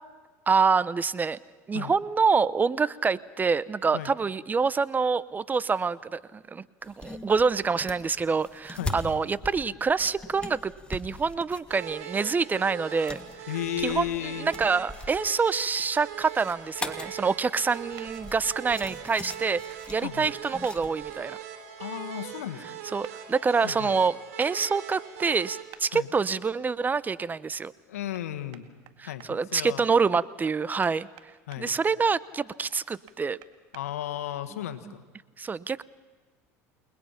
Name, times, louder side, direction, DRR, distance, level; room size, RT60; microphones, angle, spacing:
voice 1, 0.5-1.4 1.7-13.2 13.8-19.6 19.9-21.4 22.9-27.7 29.0-31.1 31.6-33.4 35.4-35.8, right 5 dB, 25° right, 18 dB, 0.7 m, -26 dB
sound 1, 6.8-21.2, left 2 dB, 15° left, 2.1 m, -42 dB
sound 2, 11.7-25.6, right 10 dB, 85° right, 3.4 m, -41 dB
voice 2, 13.5-14.5 20.0-20.3 21.8-22.8 23.6-23.9 25.9-26.1 27.9-28.7 29.0-29.9 31.5-31.7 33.7-35.0, left 12 dB, 90° left, 9 dB, 1.6 m, -34 dB
sound 3, 16.4-16.6 18.0-18.1 19.3-19.4 20.6-20.8 23.0-23.2 24.4-24.5 25.7-25.9 28.1-28.2 28.5-29.3 30.4-31.6 32.7-33.8, right 15 dB, 65° right, 1.9 m, -49 dB
29.5 x 20.5 x 5.8 m, 1.4 s
hypercardioid pair, 90°, 8 cm